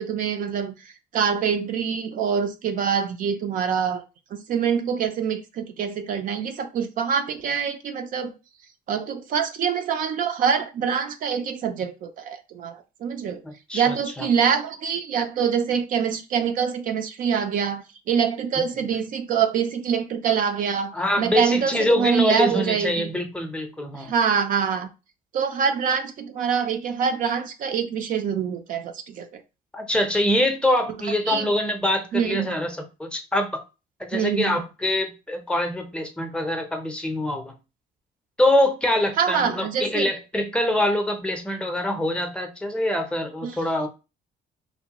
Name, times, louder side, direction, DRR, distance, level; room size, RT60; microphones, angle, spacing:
voice 1, 0.0-4.0 4.3-8.3 8.9-13.4 13.7-23.1 24.0-24.9 25.3-29.4 31.3-31.5 32.1-32.6 34.1-34.6 39.2-40.1 43.4-43.6, right 7 dB, 55° right, 0.4 m, -25 dB
voice 2, 13.4-14.3 20.9-24.1 29.7-33.6 34.0-37.5 38.4-43.9, left 1 dB, 5° left, 0.6 m, -24 dB
3.0 x 2.2 x 2.8 m
cardioid pair, 110°, 17 cm